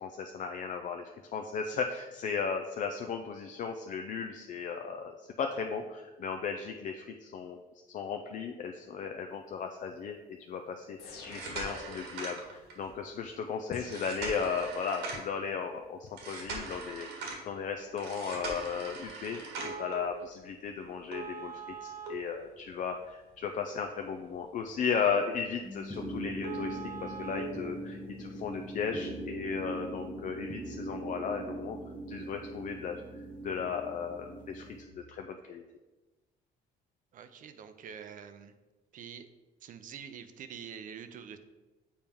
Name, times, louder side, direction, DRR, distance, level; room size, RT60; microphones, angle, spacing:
voice 1, 0.0-7.6 7.9-10.2 10.5-31.8 32.1-33.0 33.4-34.6 35.0-35.6, left 6 dB, 50° left, 5 dB, 0.5 m, -36 dB
sound 1, 11.0-12.2 13.7-15.0, left 3 dB, 80° left, 1.3 m, -49 dB
sound 2, 11.1-12.9 13.8-15.4 16.2-17.4 18.0-19.9 21.1-23.0 23.4-23.5 24.1-24.2 24.6-24.8 25.0-25.1 25.5-25.6 25.9-26.0 26.4-27.4 28.5-28.6, right 4 dB, 90° right, 1.6 m, -41 dB
sound 3, 25.6-34.8, right 1 dB, 5° left, 1.0 m, -41 dB
voice 2, 37.1-38.5 38.9-39.3 39.6-41.4, right 7 dB, 50° right, 10 dB, 0.5 m, -46 dB
7.1 x 4.4 x 3.5 m, 1.2 s
cardioid pair, 110°, 17 cm